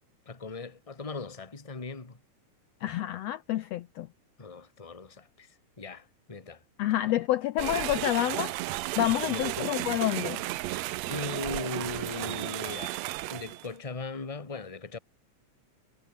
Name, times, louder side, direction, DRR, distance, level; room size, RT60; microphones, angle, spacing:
voice 1, 0.2-2.2 4.4-6.6 9.3-9.7 11.1-13.0 13.3-15.0, left 4 dB, 15° left, 1.5 m, -39 dB
voice 2, 2.8-4.1 6.8-8.5 9.0-10.4, left 14 dB, 85° left, 1.4 m, -28 dB
sound 1, 7.6-13.7, right 17 dB, 80° right, 1.6 m, -34 dB
omnidirectional pair, 3.8 m